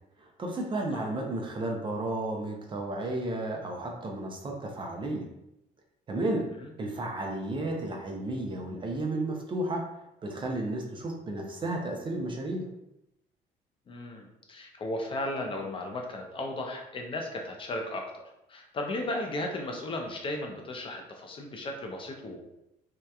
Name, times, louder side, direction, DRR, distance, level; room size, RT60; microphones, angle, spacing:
voice 1, 0.2-5.3 6.1-6.5 6.8-9.8 10.2-12.7, right 1 dB, 30° right, 1 dB, 0.4 m, -33 dB
voice 2, 13.9-18.2 18.5-22.4, left 1 dB, 30° left, 2 dB, 0.4 m, -35 dB
2.7 x 2.2 x 2.2 m, 0.86 s
cardioid pair, 110°, 17 cm